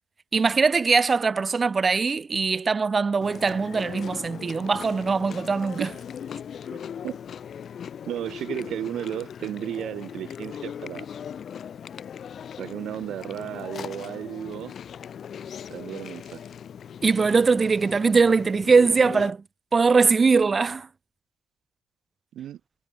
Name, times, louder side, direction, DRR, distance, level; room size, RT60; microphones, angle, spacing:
voice 1, 0.3-5.9 17.0-19.4 19.7-20.9, right 4 dB, 35° right, 3.8 m, -21 dB
Chewing mastication, 3.2-19.3, left 8 dB, 55° left, 3.5 m, -39 dB
voice 2, 6.7-7.2 8.1-11.1 12.6-14.7 15.7-16.4 22.3-22.6, right 11 dB, 75° right, 3.4 m, -34 dB
cardioid pair, 90°, 0 cm